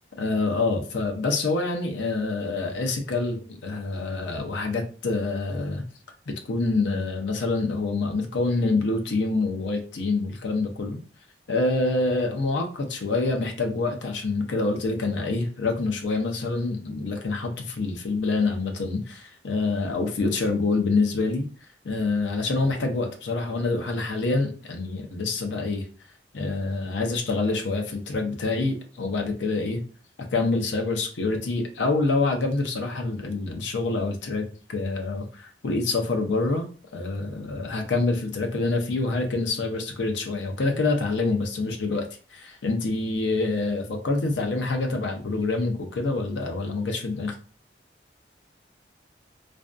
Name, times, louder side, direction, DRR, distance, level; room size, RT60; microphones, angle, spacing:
voice 1, 0.2-5.8 6.3-11.0 11.5-21.5 21.8-25.8 26.3-29.8 30.3-36.7 36.9-47.3, left 3 dB, 80° left, 3 dB, 0.5 m, -26 dB
2.5 x 2.2 x 2.4 m, 0.40 s
head